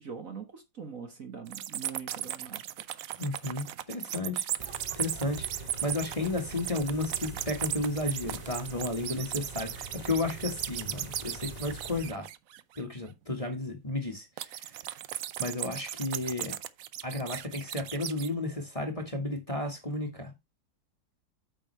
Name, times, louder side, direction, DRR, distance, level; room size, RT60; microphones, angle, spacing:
voice 1, 0.0-2.6, right 6 dB, 50° right, 1.6 m, -42 dB
sound 1, 1.5-12.8 14.4-18.3, right 11 dB, 70° right, 0.8 m, -37 dB
voice 2, 3.2-4.5 4.9-12.3 12.8-14.8 15.4-16.5 17.0-20.3, left 2 dB, 20° left, 1.5 m, -33 dB
sound 2, 4.6-12.1, right 2 dB, 20° right, 2.3 m, -45 dB
8.8 x 6.6 x 3.2 m
omnidirectional pair, 2.0 m